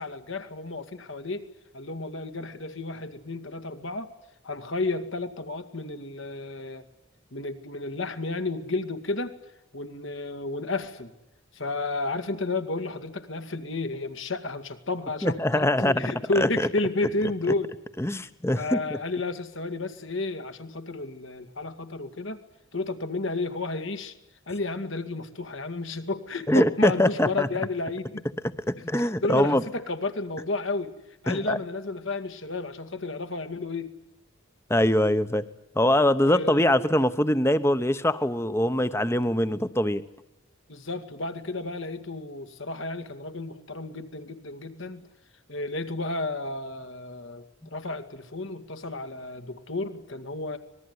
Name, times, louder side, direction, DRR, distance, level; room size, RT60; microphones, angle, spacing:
voice 1, 0.0-1.5 1.7-4.1 4.4-6.8 7.3-9.3 9.7-11.1 11.5-17.7 18.6-22.4 22.7-24.1 24.5-28.2 29.2-30.9 31.2-33.9 36.2-36.7 40.7-45.0 45.5-47.4 47.7-50.6, left 2 dB, 65° left, 9 dB, 2.2 m, -32 dB
voice 2, 15.2-16.7 18.0-18.8 26.5-27.5 28.7-29.6 31.3-31.6 34.7-35.4 35.7-40.0, left 1 dB, 10° left, 13 dB, 1.0 m, -23 dB
25.5 x 20.5 x 9.7 m, 0.86 s
head